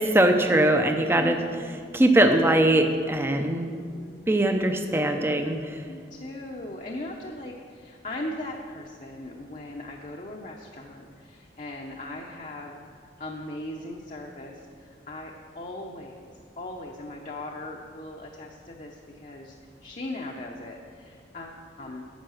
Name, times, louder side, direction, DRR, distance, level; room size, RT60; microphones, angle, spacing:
voice 1, 0.0-1.4 1.9-3.7 4.3-5.8, right 1 dB, 15° right, 5 dB, 0.6 m, -21 dB
voice 2, 1.2-1.8 3.4-4.5 5.9-12.8 13.2-16.2 16.6-19.5 19.8-22.0, left 1 dB, 45° left, -1 dB, 0.8 m, -39 dB
10.5 x 7.2 x 6.4 m, 2.2 s
head